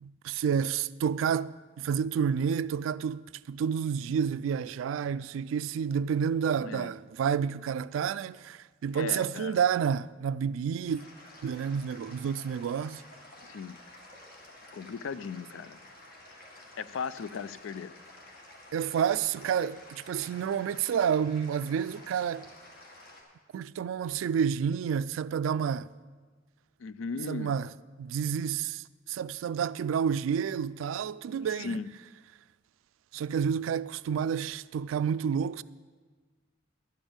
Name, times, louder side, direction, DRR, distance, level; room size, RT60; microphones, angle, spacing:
voice 1, 0.0-11.0 11.4-13.0 18.7-22.5 23.5-25.9 27.3-27.7 28.0-31.8 33.1-35.6, right 7 dB, 80° right, 0.3 m, -30 dB
voice 2, 6.6-6.9 8.9-9.6 13.4-13.8 14.7-15.8 16.8-17.9 26.8-27.5 31.6-31.9, left 5 dB, 80° left, 0.4 m, -37 dB
sound 1, 10.9-23.2, left 1 dB, 50° left, 1.8 m, -51 dB
11.5 x 5.4 x 8.7 m
head